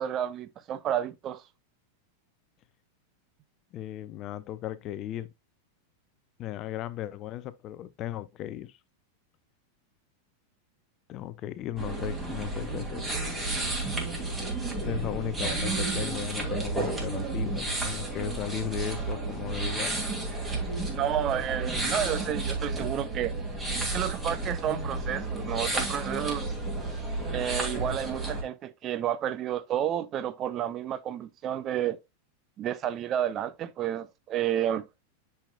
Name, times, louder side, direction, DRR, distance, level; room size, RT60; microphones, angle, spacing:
voice 1, 0.0-1.4 20.9-23.4 23.9-26.5 27.3-32.0 32.6-34.9, right 10 dB, 30° right, 0.6 m, -31 dB
voice 2, 3.7-5.3 6.4-8.8 11.1-13.1 14.8-20.0, left 12 dB, 35° left, 0.6 m, -36 dB
sound 1, 11.8-28.4, right 2 dB, 10° right, 2.6 m, -32 dB
9.8 x 5.6 x 2.3 m
figure-of-eight pair, 90°, 0 cm